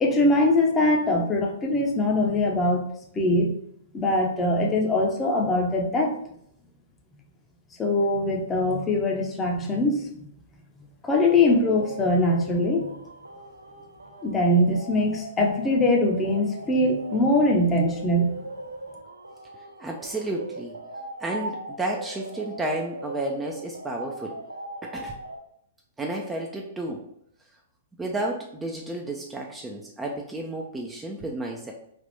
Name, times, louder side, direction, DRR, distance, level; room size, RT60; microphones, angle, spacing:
voice 1, 0.0-2.9 3.1-3.5 3.9-6.2 7.8-10.3 11.0-12.9 14.2-18.3, left 1 dB, 20° left, 1 dB, 0.7 m, -22 dB
sound 1, 11.4-25.4, right 2 dB, 85° right, 0.5 m, -38 dB
voice 2, 19.8-20.8 21.2-24.4 24.8-25.1 26.0-27.1 28.0-31.7, right 2 dB, 10° right, 0 dB, 0.5 m, -32 dB
3.4 x 2.4 x 4.0 m, 0.71 s
figure-of-eight pair, 110°, 0 cm